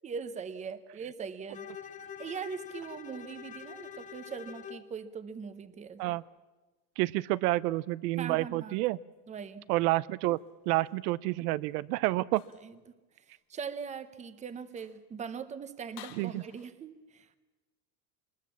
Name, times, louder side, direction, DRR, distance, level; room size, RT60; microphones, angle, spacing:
voice 1, 0.0-1.7 2.2-6.2 8.2-8.8 9.3-9.7 12.6-12.8 13.5-17.4, right 6 dB, 15° right, 13 dB, 0.8 m, -41 dB
Bowed string instrument, 1.5-4.9, left 8 dB, 15° left, 0.7 m, -45 dB
voice 2, 7.0-9.0 9.7-10.4 10.7-12.4 16.2-16.4, right 19 dB, 75° right, 19 dB, 0.7 m, -29 dB
sound 1, 10.2-11.1 12.3-12.8 13.3-13.4 14.0-14.1 14.6-15.1 16.0-16.7, left 16 dB, 65° left, 1.4 m, -54 dB
22.5 x 20.5 x 7.3 m, 1.2 s
cardioid pair, 155°, 48 cm